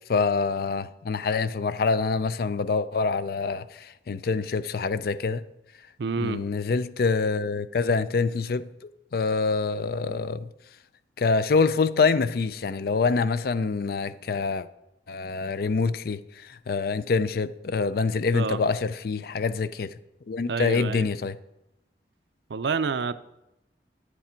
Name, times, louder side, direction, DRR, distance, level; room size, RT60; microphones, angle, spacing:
voice 1, 0.1-5.4 6.2-8.7 9.1-10.5 11.2-14.7 15.1-16.2 16.5-20.0 20.3-21.4, left 4 dB, 55° left, 0.4 m, -25 dB
voice 2, 6.0-6.4 18.3-18.6 20.5-21.1 22.5-23.1, right 5 dB, 75° right, 0.5 m, -28 dB
9.9 x 8.3 x 4.4 m
head